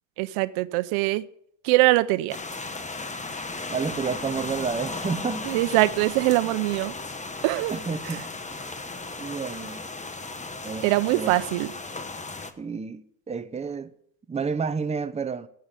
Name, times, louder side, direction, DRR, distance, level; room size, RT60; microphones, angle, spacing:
voice 1, 0.2-1.3 1.6-2.4 5.4-6.9 7.4-7.7 8.1-8.2 10.8-11.7, right 19 dB, 85° right, 0.8 m, -22 dB
sound 1, 2.3-12.5, left 3 dB, 15° left, 1.1 m, -36 dB
voice 2, 3.7-5.5 7.7-8.7 9.2-9.9 10.6-11.3 12.6-13.9 14.3-15.5, right 5 dB, 15° right, 0.7 m, -30 dB
11.0 x 7.8 x 8.2 m
cardioid pair, 100°, 47 cm